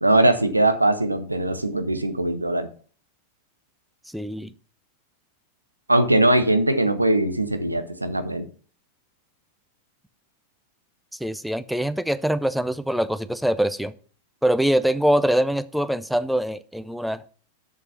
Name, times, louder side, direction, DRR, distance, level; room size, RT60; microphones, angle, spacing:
voice 1, 0.0-2.7 5.9-8.4, right 1 dB, 85° right, 1.0 m, -21 dB
voice 2, 4.1-4.5 11.2-13.9 14.4-17.2, right 1 dB, ahead, 0.5 m, -23 dB
6.8 x 6.6 x 7.1 m
figure-of-eight pair, 90°, 0 cm